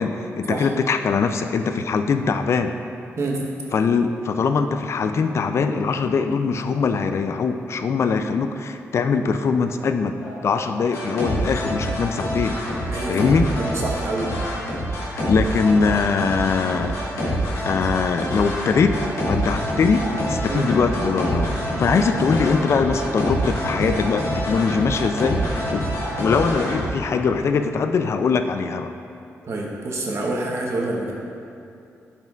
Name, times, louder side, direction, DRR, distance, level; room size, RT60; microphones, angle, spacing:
voice 1, 0.0-2.7 3.7-10.1 10.4-12.6 13.1-13.5 15.3-17.0 17.2-17.4 17.6-19.0 19.3-21.5 21.8-25.4 25.7-25.8 26.2-28.9, left 5 dB, 55° left, 8 dB, 0.3 m, -22 dB
sound 1, 10.2-26.9, equal, 90° left, 1.4 m, -26 dB
voice 2, 12.9-14.3 20.5-20.7 21.9-22.0 29.4-31.1, right 2 dB, 60° right, -2 dB, 1.0 m, -27 dB
10.5 x 4.3 x 2.4 m, 2.6 s
cardioid pair, 75°, 5 cm